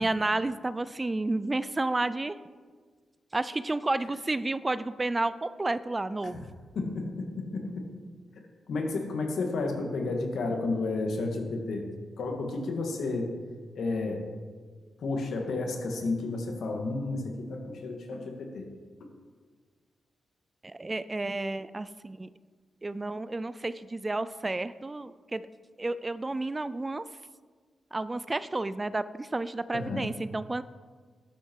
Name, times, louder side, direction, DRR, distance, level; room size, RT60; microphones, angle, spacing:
voice 1, 0.0-2.4 3.3-6.4 20.6-22.3 22.8-25.5 25.8-27.0 27.9-30.6, right 2 dB, 25° right, 15 dB, 0.4 m, -31 dB
voice 2, 6.8-7.9 8.7-11.8 12.2-13.3 13.7-14.2 15.0-18.7 29.7-30.1, left 3 dB, 75° left, 3 dB, 2.1 m, -32 dB
13.0 x 10.5 x 4.8 m, 1.5 s
cardioid pair, 80°, 0 cm